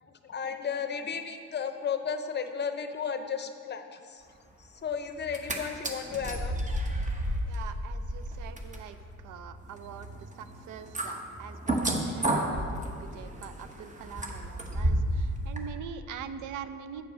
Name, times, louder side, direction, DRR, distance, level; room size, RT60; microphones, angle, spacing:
voice 1, 0.0-4.2 4.8-6.6, left 6 dB, 35° left, 8 dB, 0.7 m, -34 dB
sound 1, 5.2-5.6 5.8-15.2 15.6-15.7, right 1 dB, 25° right, 1.0 m, -32 dB
voice 2, 7.4-17.0, right 8 dB, 80° right, 12 dB, 0.5 m, -44 dB
8.7 x 4.6 x 6.1 m, 2.2 s
cardioid pair, 90°, 30 cm